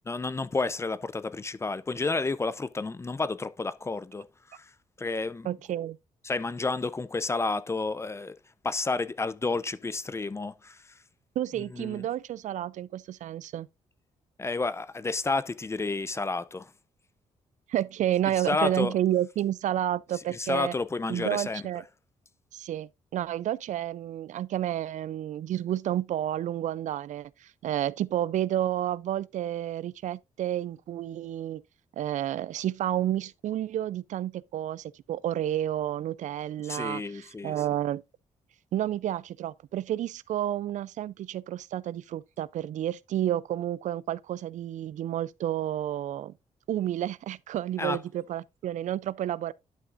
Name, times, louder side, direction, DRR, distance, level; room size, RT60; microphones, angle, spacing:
voice 1, 0.1-4.7 5.0-5.5 6.2-8.4 8.6-10.8 11.7-12.0 14.4-16.7 18.5-18.9 20.3-21.6 36.6-37.6 47.8-48.0, left 3 dB, 20° left, 0.5 m, -30 dB
voice 2, 5.4-6.0 11.4-13.7 17.7-20.7 21.1-21.8 22.5-31.6 31.9-38.0 38.7-46.3 46.7-49.5, right 12 dB, 70° right, 0.4 m, -30 dB
11.0 x 6.0 x 2.5 m
cardioid pair, 100°, 13 cm